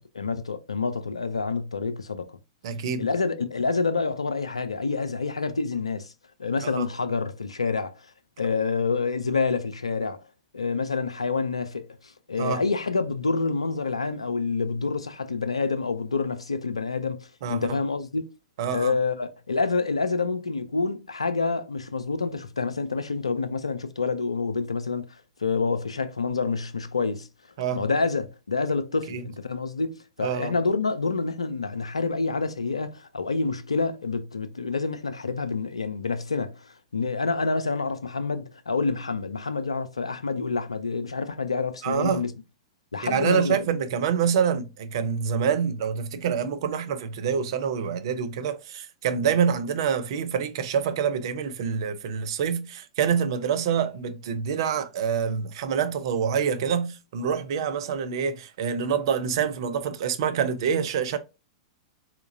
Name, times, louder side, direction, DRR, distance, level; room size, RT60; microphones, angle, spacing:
voice 1, 0.0-2.4 3.0-6.1 6.4-8.1 8.4-10.2 10.5-17.2 17.5-18.2 18.7-25.1 25.4-27.3 27.7-42.3 42.9-43.5, left 4 dB, 85° left, 0.4 m, -27 dB
voice 2, 2.6-3.1 6.6-6.9 12.4-12.6 17.4-17.7 18.6-18.9 27.6-27.8 29.1-29.2 30.2-30.5 41.8-42.2 43.0-61.2, right 7 dB, 55° right, 0.5 m, -26 dB
3.6 x 2.9 x 2.5 m
figure-of-eight pair, 100°, 3 cm